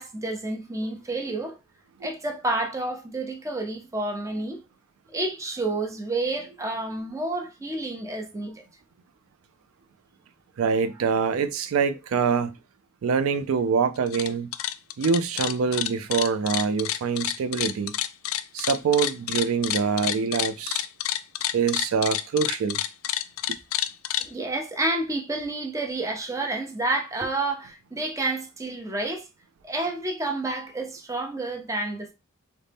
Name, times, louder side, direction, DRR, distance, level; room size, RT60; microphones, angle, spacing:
voice 1, 0.0-1.6 2.0-4.6 5.1-8.6 24.2-29.3 29.6-32.1, right 2 dB, 15° right, 0.6 m, -29 dB
voice 2, 10.6-12.5 13.0-14.5 15.0-18.0 18.5-20.9 21.5-22.8, right 5 dB, 75° right, 0.4 m, -25 dB
sound 1, 14.0-14.3 14.5-24.3, left 13 dB, 75° left, 0.3 m, -28 dB
4.0 x 2.1 x 3.4 m
head